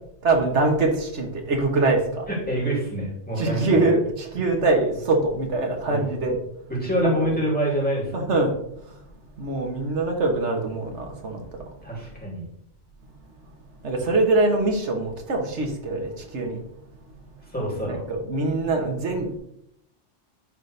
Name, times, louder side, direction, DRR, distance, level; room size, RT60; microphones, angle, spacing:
voice 1, 0.2-2.3 3.4-6.4 7.0-7.3 8.1-8.5 8.8-9.0 9.4-11.7 13.8-16.6 17.8-19.4, right 2 dB, 75° right, 2 dB, 1.6 m, -23 dB
voice 2, 2.3-3.8 5.9-6.2 6.7-8.3 11.8-12.5 17.5-18.0, equal, 5° left, -4 dB, 2.5 m, -26 dB
11.5 x 4.1 x 3.3 m, 0.75 s
omnidirectional pair, 1.2 m